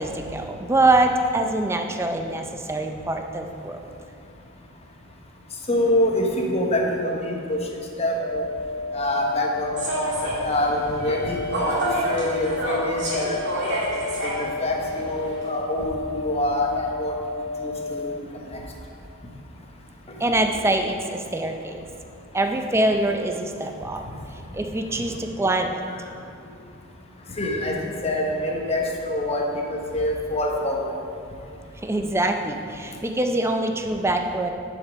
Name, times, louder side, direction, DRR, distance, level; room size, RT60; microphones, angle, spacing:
voice 1, 0.0-3.8 20.2-21.8 22.3-24.0 24.5-25.8 31.8-34.5, right 2 dB, 10° right, 5 dB, 0.5 m, -24 dB
voice 2, 5.7-7.7 8.0-8.4 8.9-13.8 14.2-17.1 17.6-18.1 18.5-18.6 25.9-26.0 27.4-29.5 29.9-30.9, left 1 dB, 30° left, 0 dB, 1.0 m, -26 dB
sound 1, 8.2-18.2, left 4 dB, 65° left, 0.4 m, -32 dB
Human voice / Subway metro underground, 9.8-15.5, right 1 dB, 55° right, 2.3 m, -29 dB
10.5 x 5.3 x 5.1 m, 2.5 s
head